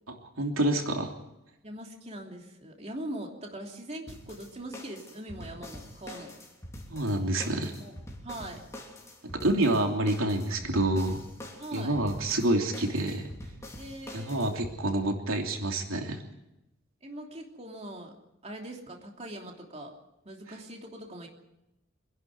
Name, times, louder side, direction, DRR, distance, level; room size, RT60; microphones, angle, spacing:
voice 1, 0.1-1.1 6.9-7.7 9.2-11.2 11.7-13.3 14.1-16.2, right 1 dB, 90° right, 2 dB, 3.0 m, -28 dB
voice 2, 1.6-6.3 7.6-7.9 8.2-8.7 11.6-12.0 13.8-14.5 17.0-18.1 18.4-19.9 20.2-21.3, right 1 dB, 30° right, 1 dB, 3.0 m, -41 dB
sound 1, 4.1-14.8, left 1 dB, 15° left, 3.3 m, -45 dB
26.0 x 11.5 x 9.6 m, 0.91 s
head